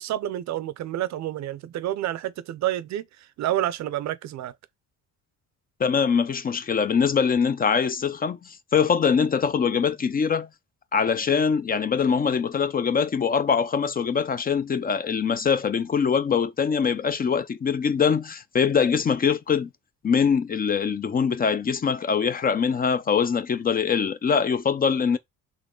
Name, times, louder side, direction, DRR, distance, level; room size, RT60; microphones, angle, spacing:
voice 1, 0.0-3.0 3.4-4.5, right 13 dB, 65° right, 0.5 m, -29 dB
voice 2, 5.8-10.5 10.9-19.7 20.0-25.2, left 6 dB, 30° left, 0.4 m, -23 dB
3.8 x 3.1 x 3.7 m
cardioid pair, 90°, 30 cm